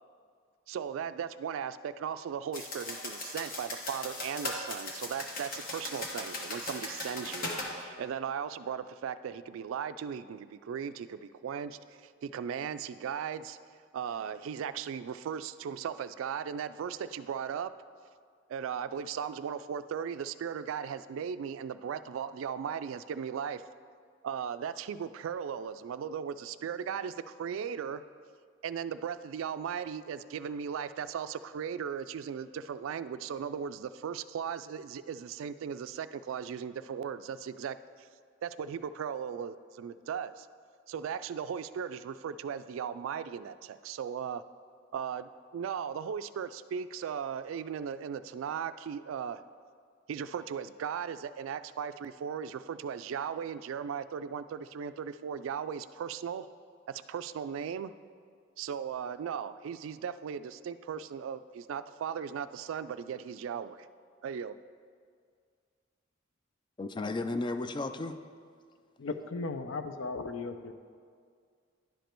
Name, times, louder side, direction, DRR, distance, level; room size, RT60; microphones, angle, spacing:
voice 1, 0.7-13.6 13.9-17.7 18.5-23.6 24.2-28.0 28.6-38.1 38.4-40.5 40.9-44.4 44.9-49.4 50.1-56.5 56.9-57.9 58.6-63.9 64.2-64.6, right 7 dB, 80° right, 14 dB, 0.3 m, -37 dB
sound 1, 2.5-7.7, left 2 dB, 45° left, 1.1 m, -38 dB
voice 2, 66.8-68.2, left 2 dB, 25° left, 9 dB, 0.3 m, -34 dB
voice 3, 69.0-70.7, left 3 dB, 75° left, 8 dB, 0.5 m, -36 dB
10.5 x 5.1 x 4.4 m, 2.1 s
head